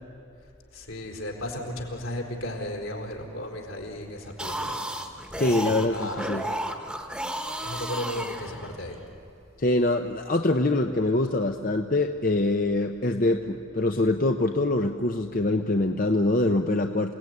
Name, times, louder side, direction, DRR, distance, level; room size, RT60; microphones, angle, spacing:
voice 1, 0.7-6.3 7.6-9.0, left 1 dB, 75° left, 1 dB, 4.3 m, -35 dB
sound 1, 4.2-9.0, right 1 dB, 5° right, 1.3 m, -33 dB
voice 2, 5.4-6.5 9.6-17.1, left 2 dB, 40° left, 5 dB, 0.8 m, -24 dB
28.5 x 18.0 x 9.6 m, 2.8 s
head